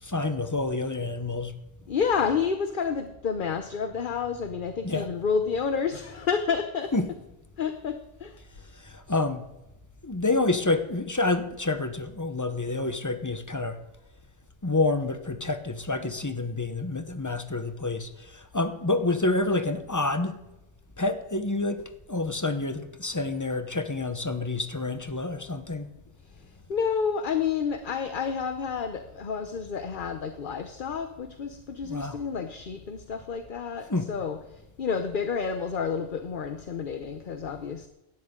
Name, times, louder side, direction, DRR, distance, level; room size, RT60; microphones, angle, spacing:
voice 1, 0.0-1.5 4.8-5.1 6.9-7.1 8.7-9.5 10.0-13.8 14.6-20.4 21.0-21.8 22.1-25.9 31.8-32.2 33.9-34.1, left 2 dB, 15° left, 9 dB, 0.9 m, -28 dB
voice 2, 1.9-6.9 7.6-8.4 26.2-37.9, left 6 dB, 50° left, 8 dB, 0.9 m, -30 dB
17.0 x 12.5 x 3.8 m, 0.95 s
omnidirectional pair, 1.2 m